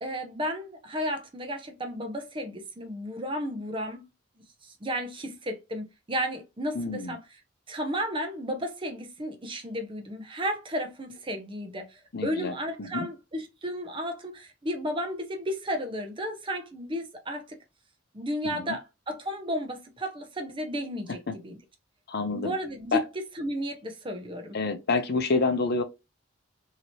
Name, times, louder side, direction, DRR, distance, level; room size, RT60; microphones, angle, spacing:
voice 1, 0.0-4.0 4.6-7.2 7.7-17.6 18.1-21.6 22.3-23.0 23.4-24.6, equal, 25° right, 0.7 m, -33 dB
voice 2, 6.7-7.2 12.1-13.1 18.4-18.8 21.3-21.4 22.1-22.5 22.9-23.0 24.5-25.8, left 3 dB, 50° left, 0.6 m, -28 dB
2.9 x 2.8 x 2.8 m
head